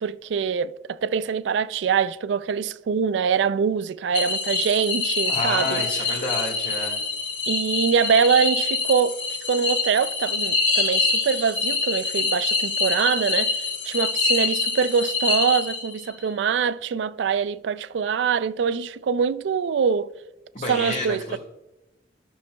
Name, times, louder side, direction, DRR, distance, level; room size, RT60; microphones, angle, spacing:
voice 1, 0.0-5.8 7.5-20.1 20.7-21.4, right 6 dB, 85° right, 0.3 m, -24 dB
sound 1, 4.1-16.1, left 4 dB, 80° left, 2.3 m, -25 dB
voice 2, 5.3-7.0 20.5-21.4, left 2 dB, 50° left, 1.6 m, -29 dB
14.0 x 6.1 x 2.2 m
head